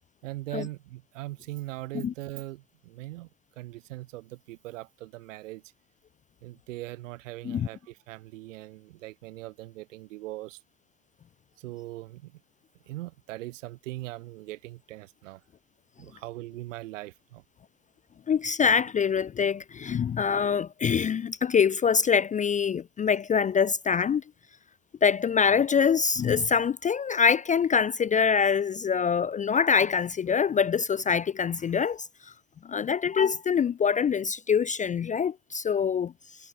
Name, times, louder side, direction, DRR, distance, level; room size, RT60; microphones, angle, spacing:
voice 1, 0.2-3.3 3.6-5.6 6.4-10.6 11.6-12.4 12.9-15.4 16.0-17.4, right 18 dB, 75° right, 3.5 m, -40 dB
voice 2, 18.3-24.2 25.0-32.1 32.6-36.1, left 6 dB, 20° left, 0.4 m, -24 dB
hypercardioid pair, 70°, 38 cm